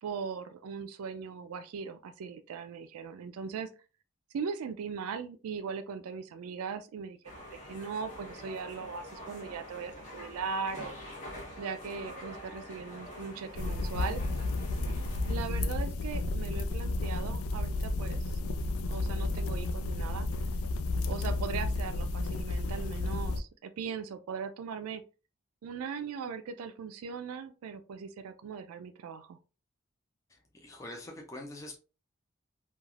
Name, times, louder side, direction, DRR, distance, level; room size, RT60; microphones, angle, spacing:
voice 1, 0.0-3.7 4.3-7.4 7.7-10.9 11.6-14.2 15.3-18.3 18.9-20.3 21.1-25.0 25.6-29.4, right 6 dB, 90° right, 0.3 m, -39 dB
sound 1, 7.2-15.4, equal, 35° left, 0.8 m, -46 dB
sound 2, 13.6-23.4, left 2 dB, 80° left, 0.3 m, -32 dB
voice 2, 30.3-31.8, left 1 dB, 15° left, 0.4 m, -44 dB
3.2 x 2.3 x 2.3 m
head